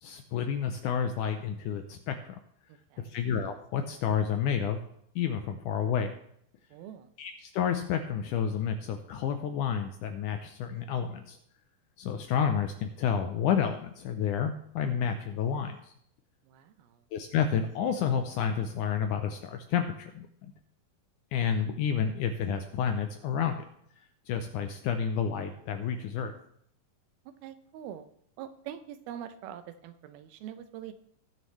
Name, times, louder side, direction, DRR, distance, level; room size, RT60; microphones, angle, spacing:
voice 1, 0.0-2.4 3.0-4.8 5.2-6.1 7.2-11.4 12.0-15.9 17.1-20.5 21.3-23.6 24.3-26.3, left 7 dB, 80° left, 7 dB, 1.9 m, -30 dB
voice 2, 6.7-7.1 16.5-17.0 27.4-28.1 28.4-30.9, right 10 dB, 90° right, 12 dB, 2.6 m, -43 dB
19.0 x 6.5 x 3.2 m, 0.69 s
omnidirectional pair, 4.2 m